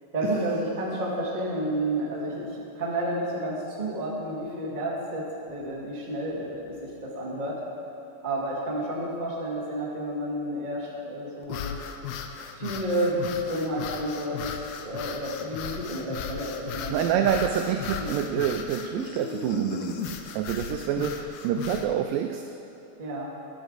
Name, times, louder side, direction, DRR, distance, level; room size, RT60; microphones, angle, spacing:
voice 1, 0.1-7.6 8.2-11.8 12.5-14.5 14.8-17.0 18.0-18.1 23.0-23.3, right 1 dB, 25° right, -6 dB, 1.0 m, -30 dB
sound 1, 11.4-21.9, left 7 dB, 85° left, 2.5 m, -36 dB
voice 2, 16.9-22.4, right 9 dB, 85° right, 5 dB, 2.0 m, -27 dB
11.5 x 11.5 x 4.0 m, 2.9 s
omnidirectional pair, 4.4 m